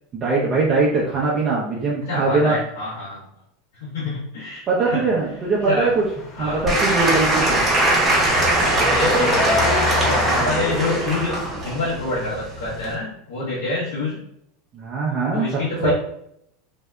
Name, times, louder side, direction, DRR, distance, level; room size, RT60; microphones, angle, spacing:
voice 1, 0.1-2.6 4.7-6.0 6.4-7.6 14.7-15.5 15.8-15.9, right 3 dB, 40° right, -5 dB, 0.6 m, -21 dB
voice 2, 2.1-3.3 3.7-5.1 5.6-5.9 6.4-6.6 8.5-14.2 15.3-15.9, left 3 dB, 85° left, -9 dB, 0.8 m, -27 dB
sound 1, 5.5-11.8, left 2 dB, 40° left, 0.9 m, -29 dB
Applause / Crowd, 6.7-13.0, right 1 dB, 20° right, 1.0 m, -21 dB
2.6 x 2.1 x 2.2 m, 0.73 s
hypercardioid pair, 100°, 0 cm